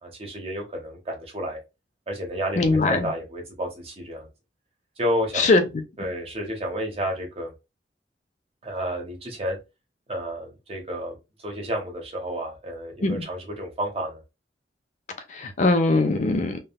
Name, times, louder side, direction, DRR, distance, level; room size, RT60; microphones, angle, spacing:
voice 1, 0.0-1.6 2.1-4.3 5.0-5.5 6.0-7.5 8.6-9.6 10.1-11.2 11.4-14.2, equal, 35° right, 0.9 m, -31 dB
voice 2, 2.6-3.1 5.4-5.6 13.0-13.2 15.3-16.6, left 3 dB, 45° left, 0.5 m, -21 dB
3.4 x 2.2 x 2.3 m
head